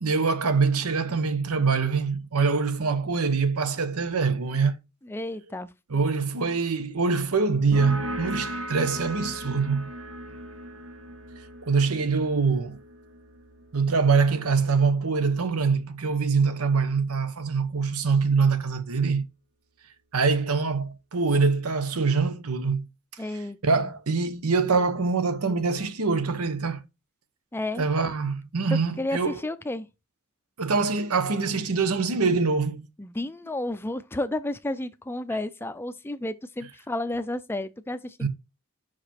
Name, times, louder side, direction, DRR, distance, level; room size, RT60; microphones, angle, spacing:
voice 1, 0.0-4.7 5.9-9.9 11.6-12.8 13.7-19.2 20.1-22.9 23.6-26.8 27.8-29.4 30.6-32.9 38.2-38.3, right 4 dB, 85° right, 0.9 m, -24 dB
voice 2, 5.0-5.7 23.2-23.9 27.5-27.9 28.7-29.9 33.0-38.3, left 1 dB, 10° left, 0.4 m, -32 dB
sound 1, 7.7-15.0, right 1 dB, 70° right, 1.2 m, -37 dB
5.8 x 4.9 x 4.3 m
head